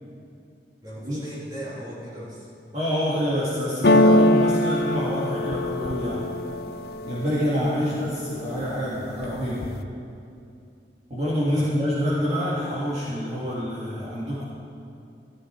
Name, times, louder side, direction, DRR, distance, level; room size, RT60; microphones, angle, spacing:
voice 1, 0.8-2.5 7.9-8.0 11.5-11.7, right 1 dB, 20° right, -7 dB, 3.4 m, -38 dB
voice 2, 2.7-6.3 7.0-9.7 11.1-14.4, equal, 40° right, -9 dB, 2.3 m, -27 dB
sound 1, 3.8-7.7 8.2-8.8 9.1-9.8, left 1 dB, 60° left, 0.6 m, -22 dB
14.0 x 13.5 x 4.7 m, 2.6 s
head